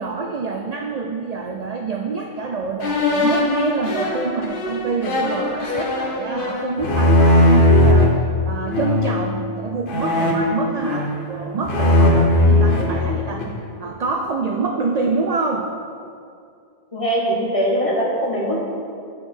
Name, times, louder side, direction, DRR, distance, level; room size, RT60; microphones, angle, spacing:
voice 1, 0.0-8.2 8.4-13.5 13.8-15.7, right 4 dB, 55° right, 3 dB, 0.5 m, -26 dB
sound 1, 2.8-8.1 8.7-9.2 9.9-11.3 11.6-13.6, left 1 dB, 60° left, 1.1 m, -18 dB
voice 2, 16.9-18.7, equal, 35° left, -5 dB, 1.4 m, -21 dB
8.7 x 4.9 x 4.4 m, 2.4 s
omnidirectional pair, 1.0 m